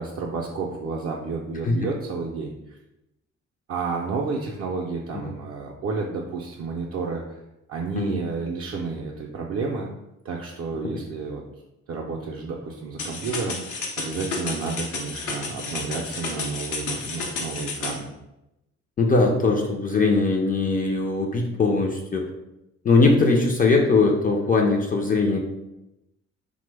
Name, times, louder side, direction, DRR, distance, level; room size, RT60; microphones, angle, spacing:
voice 1, 0.0-2.8 3.7-7.4 7.7-9.9 10.2-11.4 11.9-18.1, right 4 dB, 50° right, -1 dB, 0.4 m, -31 dB
sound 1, 13.0-18.0, left 4 dB, 85° left, 0.6 m, -32 dB
voice 2, 19.0-22.3 22.8-25.4, left 3 dB, 30° left, 1 dB, 0.3 m, -20 dB
2.9 x 2.1 x 3.3 m, 0.91 s
cardioid pair, 90°, 30 cm